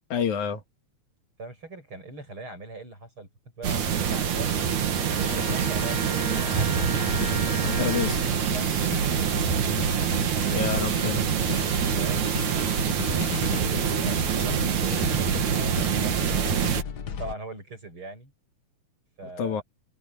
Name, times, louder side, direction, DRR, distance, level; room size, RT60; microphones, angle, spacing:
voice 1, 0.1-0.6 7.6-8.2 10.5-11.3 19.4-19.6, left 7 dB, 85° left, 3.4 m, -28 dB
voice 2, 1.4-3.3 3.6-4.5 5.0-6.9 8.4-8.7 9.0-9.4 12.0-12.3 12.7-16.5 17.2-18.3 19.2-19.6, right 3 dB, 45° right, 8.9 m, -41 dB
sound 1, 3.6-16.8, right 7 dB, 75° right, 3.4 m, -25 dB
Wind instrument woodwind instrument, 3.9-8.2, right 2 dB, 20° right, 2.4 m, -37 dB
sound 2, 5.1-17.3, left 7 dB, 50° left, 1.3 m, -36 dB
omnidirectional pair, 3.3 m